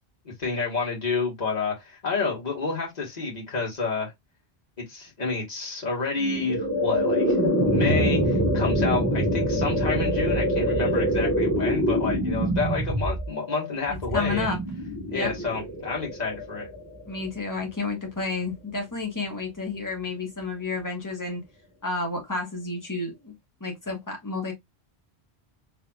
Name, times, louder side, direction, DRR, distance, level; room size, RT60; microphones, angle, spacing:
voice 1, 0.4-4.1 4.9-7.4 7.6-14.6 15.1-16.7, left 4 dB, 45° left, 1.8 m, -29 dB
sound 1, 6.1-17.3, equal, 40° right, 1.4 m, -25 dB
voice 2, 13.9-14.6 15.1-15.3 17.1-21.4 21.8-23.3 23.6-24.5, left 3 dB, 20° left, 1.3 m, -31 dB
4.3 x 3.3 x 2.4 m
omnidirectional pair, 1.0 m